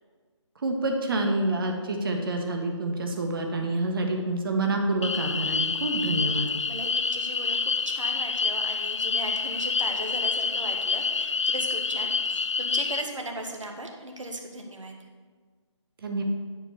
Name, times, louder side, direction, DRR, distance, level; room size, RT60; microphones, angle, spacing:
voice 1, 0.6-6.5 16.0-16.2, right 2 dB, 45° right, 3 dB, 1.4 m, -27 dB
sound 1, 5.0-13.0, left 5 dB, 70° left, 0.5 m, -27 dB
voice 2, 6.6-15.0, right 1 dB, 80° right, 3 dB, 1.5 m, -37 dB
9.8 x 4.6 x 6.7 m, 1.5 s
figure-of-eight pair, 155°, 16 cm